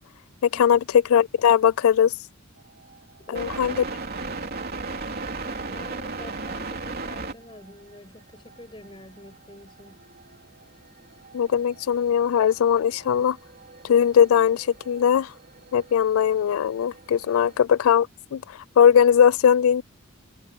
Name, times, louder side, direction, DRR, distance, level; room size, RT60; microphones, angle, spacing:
voice 1, 0.4-2.1 3.3-3.7 11.3-13.4 13.8-15.3 15.7-19.8, left 8 dB, 80° left, 0.3 m, -20 dB
sound 1, 2.6-17.6, right 3 dB, 45° right, 3.3 m, -38 dB
voice 2, 3.2-3.7 5.4-10.0, left 1 dB, 25° left, 6.7 m, -46 dB
head